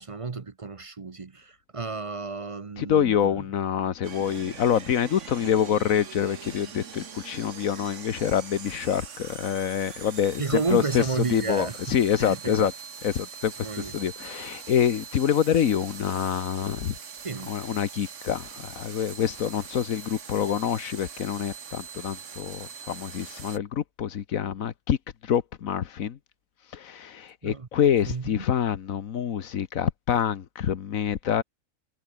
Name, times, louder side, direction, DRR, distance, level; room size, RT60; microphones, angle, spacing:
voice 1, 0.0-3.4 10.4-12.7 13.6-13.9 17.2-17.5 27.4-27.7 28.1-28.5, right 4 dB, 30° right, 0.7 m, -32 dB
voice 2, 2.8-12.7 13.0-16.9 17.5-25.0 25.2-26.2 26.7-31.4, left 9 dB, 85° left, 1.5 m, -26 dB
sound 1, 4.0-23.6, right 6 dB, 65° right, 1.7 m, -42 dB
omnidirectional pair, 1.4 m